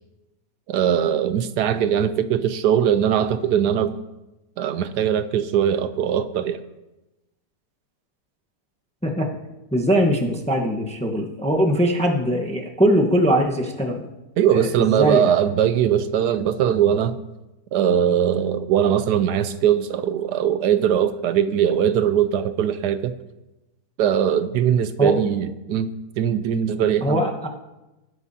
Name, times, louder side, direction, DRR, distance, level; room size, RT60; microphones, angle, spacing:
voice 1, 0.7-4.0 4.6-6.6 14.4-17.2 17.7-23.1 24.0-25.9 26.2-27.2, right 9 dB, 75° right, 11 dB, 1.1 m, -20 dB
voice 2, 9.7-14.1 14.5-15.3 25.0-25.2 27.0-27.5, equal, 5° left, 1 dB, 0.8 m, -21 dB
20.0 x 10.5 x 2.8 m, 1.0 s
omnidirectional pair, 1.9 m